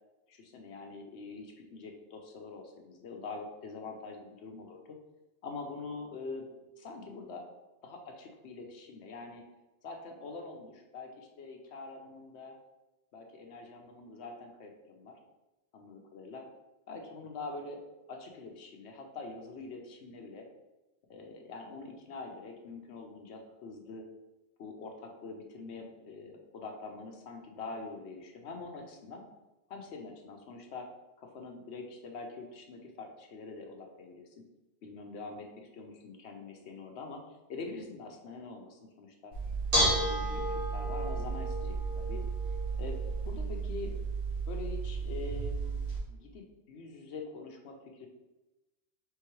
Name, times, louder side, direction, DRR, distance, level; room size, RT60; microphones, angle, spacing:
voice 1, 0.3-5.0 5.4-6.5 6.7-7.4 7.8-9.4 9.8-12.5 13.1-15.2 15.7-16.4 16.9-17.8 18.1-20.5 21.1-24.0 24.6-29.2 29.7-30.9 31.2-34.3 34.8-39.3 39.8-42.2 42.8-43.0 43.2-43.9 44.5-45.8 46.1-48.1, left 3 dB, 80° left, 3 dB, 1.0 m, -44 dB
Bell / Dishes pots and pans, 39.3-46.0, right 2 dB, 55° right, 1.7 m, -32 dB
4.7 x 3.6 x 3.0 m, 1.0 s
omnidirectional pair, 1.1 m